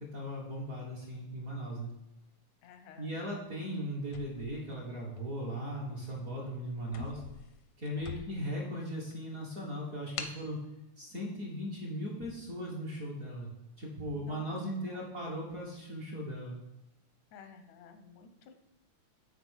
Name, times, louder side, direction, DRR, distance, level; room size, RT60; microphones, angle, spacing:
voice 1, 0.1-1.9 3.0-7.2 7.8-10.6 11.0-13.5 13.8-16.6, equal, 40° right, -4 dB, 1.4 m, -38 dB
voice 2, 2.6-3.1 8.0-8.2 14.1-14.5 14.8-15.0 17.3-18.5, left 6 dB, 90° left, 7 dB, 2.4 m, -53 dB
sound 1, 4.0-5.4 6.0-6.2 6.5-6.6 6.9-8.6 9.1-9.2 10.2-10.5, left 7 dB, 75° left, 1.5 m, -44 dB
8.6 x 4.2 x 6.4 m, 0.92 s
omnidirectional pair, 3.3 m